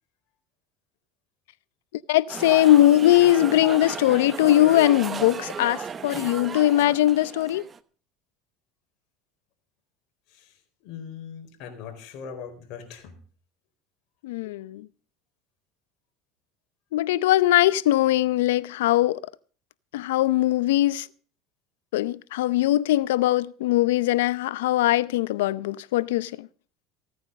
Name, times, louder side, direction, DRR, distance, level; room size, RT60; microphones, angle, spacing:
voice 1, 2.1-7.6 14.2-14.9 16.9-19.2 19.9-21.1 21.9-26.5, left 14 dB, 90° left, 0.6 m, -21 dB
sound 1, 2.3-7.8, right 6 dB, 30° right, 1.0 m, -35 dB
voice 2, 10.8-13.1, left 7 dB, 65° left, 4.4 m, -40 dB
16.0 x 9.4 x 6.5 m
supercardioid pair, 110°, 0 cm